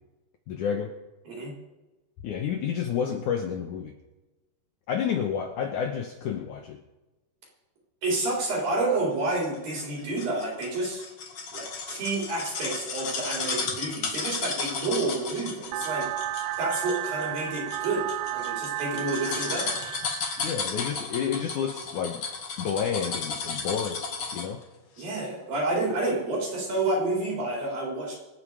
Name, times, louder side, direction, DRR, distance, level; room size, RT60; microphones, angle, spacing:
voice 1, 0.5-0.9 2.2-3.9 4.9-6.8 20.4-22.2 22.6-24.0 24.3-24.6, left 7 dB, 75° left, 4 dB, 1.9 m, -30 dB
voice 2, 8.0-11.0 11.5-16.1 16.6-18.0 18.3-19.7 25.0-28.1, right 2 dB, 60° right, -3 dB, 5.8 m, -29 dB
sound 1, 9.4-24.6 25.0-25.1, left 4 dB, 45° left, 2.4 m, -34 dB
sound 2, 15.7-20.7, right 14 dB, 80° right, 2.5 m, -33 dB
26.0 x 8.8 x 4.9 m, 1.1 s
omnidirectional pair, 4.7 m